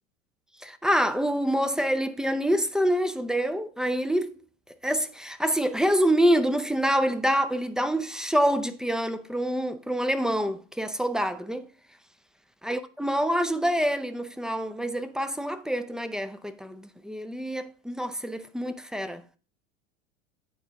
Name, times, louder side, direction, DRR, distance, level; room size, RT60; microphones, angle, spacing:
voice 1, 0.6-4.4 4.8-11.7 12.6-19.2, equal, ahead, 0.5 m, -26 dB
9.4 x 4.5 x 3.6 m
hypercardioid pair, 90°, 36 cm